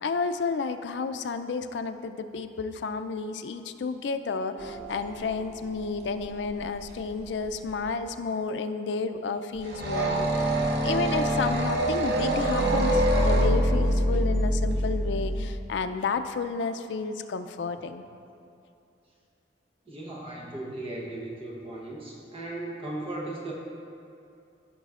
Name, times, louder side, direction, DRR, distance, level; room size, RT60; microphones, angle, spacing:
voice 1, 0.0-10.6 10.8-18.0, left 4 dB, 75° left, 10 dB, 0.4 m, -31 dB
sound 1, 4.6-7.3 7.5-7.9 9.6-15.5, right 1 dB, 65° right, 0.8 m, -26 dB
voice 2, 19.9-23.5, right 2 dB, 30° right, -3 dB, 0.9 m, -37 dB
14.0 x 5.7 x 2.4 m, 2.6 s
head